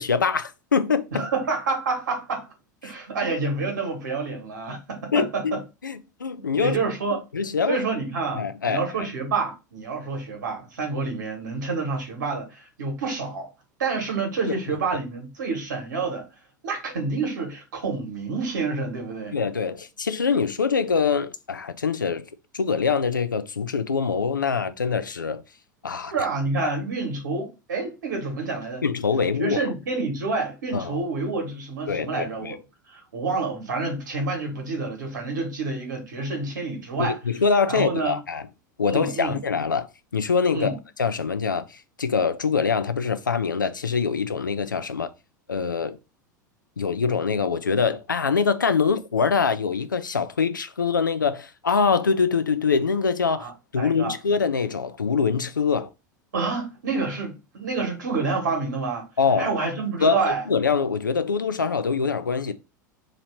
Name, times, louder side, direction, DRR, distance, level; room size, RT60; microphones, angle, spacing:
voice 1, 0.0-1.3 5.1-5.6 5.8-6.8 7.3-7.8 8.4-9.1 19.3-22.2 22.5-25.4 25.8-26.1 26.6-26.7 28.8-29.6 30.7-31.0 31.9-32.5 37.0-38.4 38.8-41.7 42.0-45.1 45.5-46.0 46.8-55.9 59.2-59.5 60.0-62.5, left 5 dB, 85° left, 0.4 m, -24 dB
voice 2, 1.1-2.5 2.8-5.6 6.6-7.2 7.7-13.5 13.8-16.3 16.6-19.3 26.1-28.8 29.4-32.6 32.9-37.2 37.7-38.2 38.8-39.4 40.5-40.8 53.4-54.1 56.3-59.1 59.4-60.5, right 4 dB, 70° right, 1.4 m, -28 dB
2.9 x 2.9 x 4.4 m
figure-of-eight pair, 85°, 10 cm